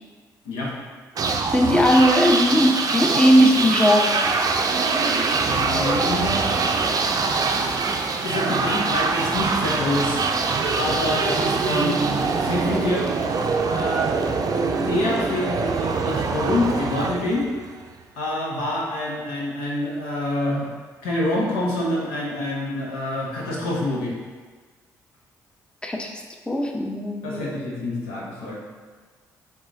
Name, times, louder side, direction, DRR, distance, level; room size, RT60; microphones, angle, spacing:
sound 1, 1.2-17.9, right 4 dB, 50° right, 0.5 m, -24 dB
voice 1, 1.5-4.3 25.8-27.4, equal, 10° left, 2 dB, 0.6 m, -19 dB
voice 2, 5.5-6.4 8.2-10.4 10.7-13.1 13.7-14.1 14.8-17.5 18.2-20.7 21.0-24.2 27.2-28.6, left 1 dB, 85° left, -4 dB, 1.0 m, -26 dB
4.6 x 4.0 x 2.6 m, 1.4 s
supercardioid pair, 55°, 8 cm